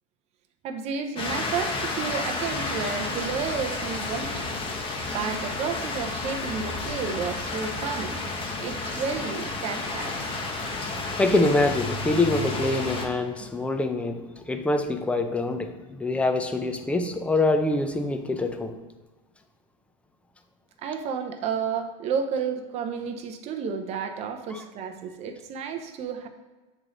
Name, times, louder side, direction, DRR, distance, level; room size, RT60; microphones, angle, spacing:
voice 1, 0.6-4.5 5.1-8.3 8.6-10.2 20.8-26.3, right 6 dB, 40° right, 6 dB, 0.7 m, -31 dB
sound 1, 1.2-13.1, left 3 dB, 30° left, 1.2 m, -31 dB
voice 2, 10.8-14.2 14.4-15.7 16.0-18.7 24.5-24.6, left 2 dB, 5° left, 7 dB, 0.5 m, -25 dB
8.5 x 3.2 x 3.8 m, 1.2 s
supercardioid pair, 130°, 17 cm